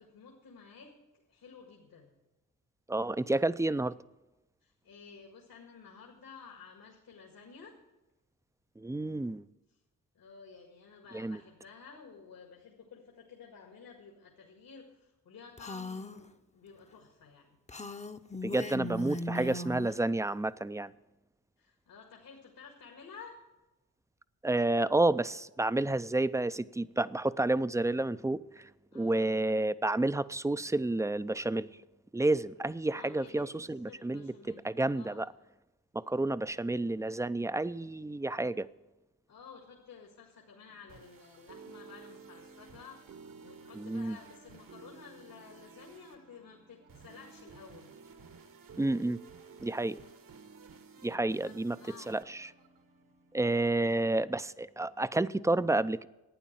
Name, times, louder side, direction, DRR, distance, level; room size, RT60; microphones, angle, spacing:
voice 1, 0.0-2.1 4.6-7.8 9.7-9.8 10.1-17.6 21.6-23.4 28.9-29.3 32.9-35.3 39.3-47.9 51.3-52.2, left 5 dB, 75° left, 2.0 m, -53 dB
voice 2, 2.9-3.9 8.8-9.4 11.1-11.4 18.4-20.9 24.4-28.6 28.9-31.7 32.1-35.3 35.9-38.7 43.8-44.2 48.8-49.2 49.6-50.0 51.0-51.8 52.1-52.5 53.3-56.1, right 2 dB, 10° right, 0.4 m, -30 dB
Female speech woman speaking, 15.6-16.2 17.7-20.0, left 1 dB, 20° left, 0.7 m, -38 dB
sound 1, 40.7-53.5, right 5 dB, 65° right, 1.4 m, -54 dB
11.5 x 9.2 x 7.5 m
cardioid pair, 55°, 35 cm